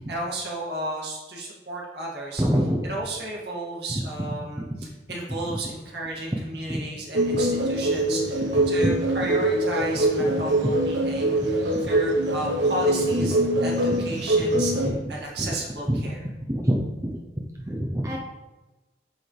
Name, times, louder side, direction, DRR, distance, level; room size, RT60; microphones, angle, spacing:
voice 1, 0.0-2.4 2.8-16.2, right 2 dB, 65° right, -3 dB, 2.2 m, -33 dB
voice 2, 2.4-2.9 6.7-6.8 8.8-8.9 14.8-14.9 15.4-15.5 15.9-16.0 16.5-17.2 17.7-18.2, equal, 15° right, -2 dB, 0.7 m, -25 dB
sound 1, 7.1-14.9, right 1 dB, 85° right, 1.2 m, -23 dB
8.2 x 6.7 x 3.4 m, 1.1 s
head